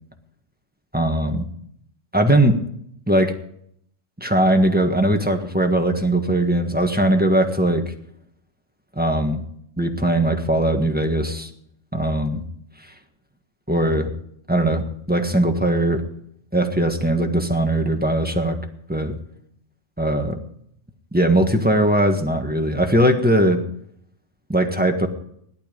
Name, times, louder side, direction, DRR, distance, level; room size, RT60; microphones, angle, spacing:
voice 1, 0.9-1.5 2.1-2.6 3.1-3.3 4.2-7.8 8.9-9.4 9.8-11.5 11.9-12.4 13.7-14.1 14.5-16.0 16.5-18.6 18.9-19.2 20.0-20.4 21.1-23.6 24.5-25.1, right 1 dB, 10° right, 4 dB, 1.5 m, -20 dB
17.5 x 11.5 x 5.2 m, 0.69 s
omnidirectional pair, 1.3 m